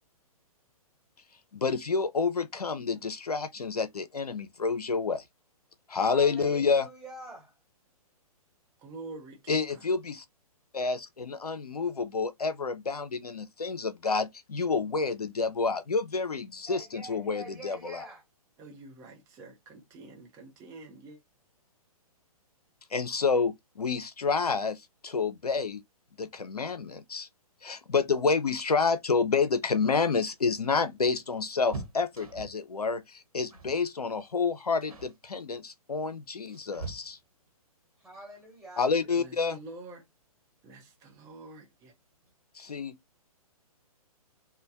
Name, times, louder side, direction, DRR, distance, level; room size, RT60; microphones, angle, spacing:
voice 1, 1.5-5.2 5.9-6.9 9.5-10.2 10.7-18.0 22.9-25.8 26.2-27.3 27.6-37.2 38.8-39.6 42.5-42.9, left 4 dB, 80° left, 0.6 m, -29 dB
voice 2, 6.0-7.6 16.7-18.2 38.0-39.2, right 2 dB, ahead, 1.5 m, -45 dB
voice 3, 8.8-9.8 18.6-21.2 39.2-40.1 40.6-41.9, right 3 dB, 15° right, 0.6 m, -47 dB
sound 1, 30.1-32.7 33.5-33.8 34.1-34.4 34.8-35.2 36.0-37.5 39.2-39.3 39.7-39.8 41.0-41.4 41.7-41.8 42.1-42.3, right 4 dB, 70° right, 1.2 m, -44 dB
3.1 x 2.2 x 2.6 m
figure-of-eight pair, 125°, 19 cm